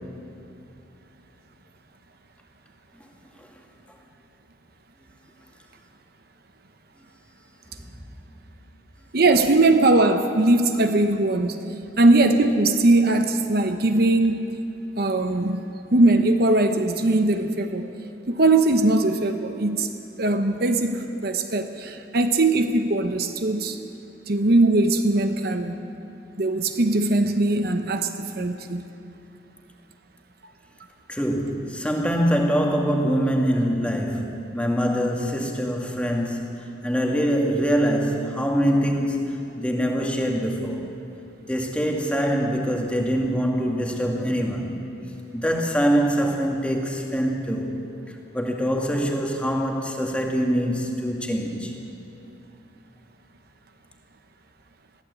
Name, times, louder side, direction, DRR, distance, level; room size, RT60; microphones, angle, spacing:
voice 1, 9.1-11.6 12.0-14.5 15.0-15.6 15.9-17.9 18.3-19.9 20.2-23.8 24.3-25.8 26.4-28.9, right 2 dB, 50° right, 7 dB, 0.9 m, -20 dB
voice 2, 31.1-40.8 41.5-44.8 45.3-47.7 48.1-51.7, equal, 5° left, 1 dB, 2.0 m, -24 dB
22.0 x 15.0 x 8.4 m, 2.7 s
head